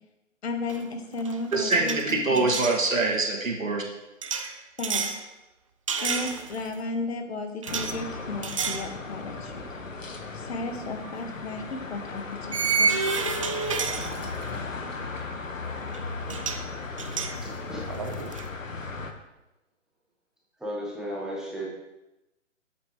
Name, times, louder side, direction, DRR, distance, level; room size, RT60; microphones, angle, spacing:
voice 1, 0.4-2.5 4.8-5.1 6.0-9.8 10.3-13.1, left 3 dB, 55° left, 5 dB, 1.6 m, -34 dB
sound 1, 0.7-0.9 1.2-2.8 4.2-5.2 5.9-6.7 7.6-8.0 8.4-8.9 9.3-9.5 11.0-11.1 12.5-14.6 15.9-16.0 16.3-16.7 17.0-18.5, right 5 dB, 25° right, 0.5 m, -30 dB
voice 2, 1.5-3.9, right 3 dB, 85° right, 0 dB, 2.2 m, -24 dB
sound 2, 7.7-19.1, left 4 dB, 85° left, 1.4 m, -36 dB
voice 3, 17.4-17.8 18.3-18.4 20.6-21.7, equal, ahead, -6 dB, 1.0 m, -35 dB
13.5 x 8.4 x 3.1 m, 0.97 s
figure-of-eight pair, 145°, 38 cm